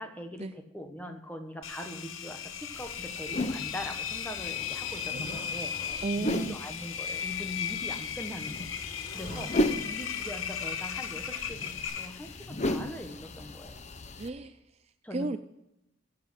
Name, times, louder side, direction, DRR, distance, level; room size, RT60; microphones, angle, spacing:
voice 1, 0.0-8.7 9.1-9.6 9.8-13.8 15.0-15.3, left 1 dB, 10° left, 5 dB, 1.2 m, -42 dB
Engine, 1.6-12.5, left 8 dB, 90° left, 0.9 m, -36 dB
Zipper (clothing), 2.5-2.6 3.2-6.1 7.1-10.0 11.0-11.2 11.8-11.9, equal, 10° right, 5.7 m, -51 dB
sound 1, 2.7-14.3, left 1 dB, 35° left, 0.8 m, -36 dB
voice 2, 6.0-6.6 9.3-9.5 14.2-14.6 15.1-15.4, right 3 dB, 30° right, 11 dB, 0.4 m, -33 dB
15.0 x 7.8 x 5.9 m, 0.89 s
head